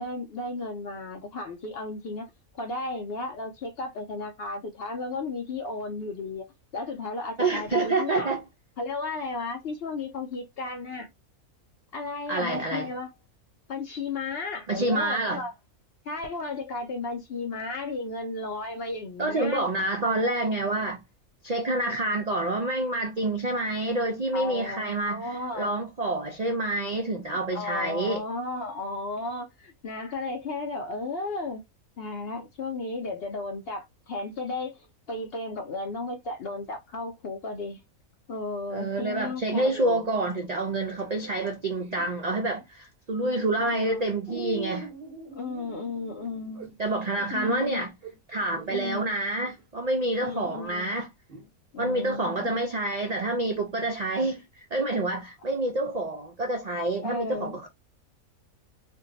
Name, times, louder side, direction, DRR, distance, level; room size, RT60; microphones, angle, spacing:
voice 1, 0.0-2.3 2.5-8.3 8.8-11.1 11.9-13.1 13.7-15.5 16.0-19.6 24.3-25.7 27.5-31.6 32.0-37.8 38.3-40.1 43.6-44.0 45.3-46.8 47.3-47.8 48.7-49.0 50.2-50.9 51.7-52.6 57.0-57.7, left 3 dB, 65° left, 0.6 m, -34 dB
voice 2, 7.4-8.4 12.3-12.9 14.7-15.4 19.2-21.0 21.4-28.2 38.7-44.9 46.8-47.9 48.3-51.1 51.8-57.7, right 2 dB, 70° right, 0.3 m, -28 dB
sound 1, 40.7-42.6 43.4-43.7 44.3-48.9 49.6-49.7 51.3-51.5, right 3 dB, 45° right, 1.0 m, -42 dB
2.6 x 2.3 x 3.8 m
omnidirectional pair, 1.5 m